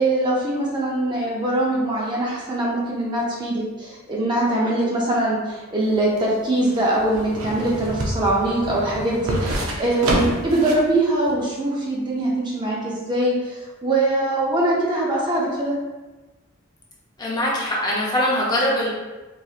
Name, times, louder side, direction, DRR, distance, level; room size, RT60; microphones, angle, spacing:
voice 1, 0.0-15.8, right 1 dB, 20° right, -4 dB, 0.5 m, -22 dB
sound 1, 5.8-10.9 11.3-11.4, right 1 dB, 85° right, 0.6 m, -27 dB
voice 2, 17.2-18.9, left 1 dB, 20° left, -5 dB, 0.7 m, -22 dB
4.0 x 2.7 x 2.4 m, 1.2 s
head